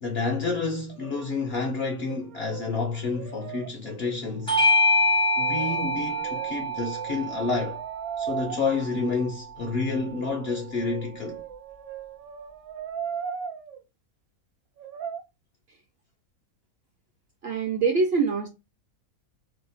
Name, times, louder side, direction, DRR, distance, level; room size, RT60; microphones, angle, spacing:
voice 1, 0.0-4.6 5.4-7.8 8.2-11.4, left 4 dB, 65° left, 0.6 m, -29 dB
Brass instrument, 0.9-1.6 1.9-4.4 5.4-8.6 9.9-13.8 14.8-15.2, right 7 dB, 75° right, 1.0 m, -38 dB
Bell / Doorbell, 4.5-9.3, left 1 dB, 10° left, 0.3 m, -25 dB
voice 2, 17.4-18.5, right 4 dB, 60° right, 0.6 m, -24 dB
2.8 x 2.0 x 4.0 m
omnidirectional pair, 1.5 m